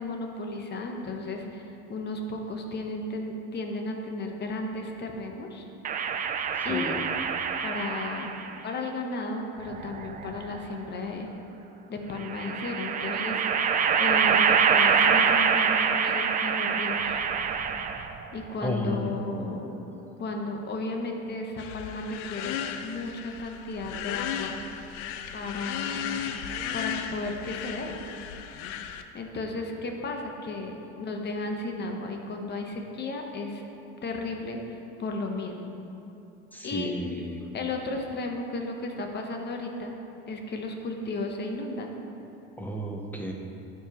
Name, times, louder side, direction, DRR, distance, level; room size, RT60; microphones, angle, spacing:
voice 1, 0.0-1.6 1.9-5.7 6.6-6.9 7.6-11.3 11.9-13.6 14.0-17.2 18.3-19.7 20.2-22.6 22.8-24.5 25.3-26.2 26.7-28.0 29.1-33.6 34.0-35.7 36.6-36.9 37.5-39.9 40.3-41.9, left 2 dB, 30° left, 2 dB, 1.0 m, -34 dB
sound 1, 5.8-8.5 9.6-10.6 12.2-18.2, right 6 dB, 25° right, 0.3 m, -25 dB
voice 2, 6.7-7.0 18.6-19.1 36.5-37.4 42.6-43.3, equal, 5° left, 0 dB, 0.7 m, -32 dB
sound 2, 21.6-29.0, left 8 dB, 80° left, 0.5 m, -35 dB
12.0 x 4.8 x 3.0 m, 2.9 s
supercardioid pair, 105°, 32 cm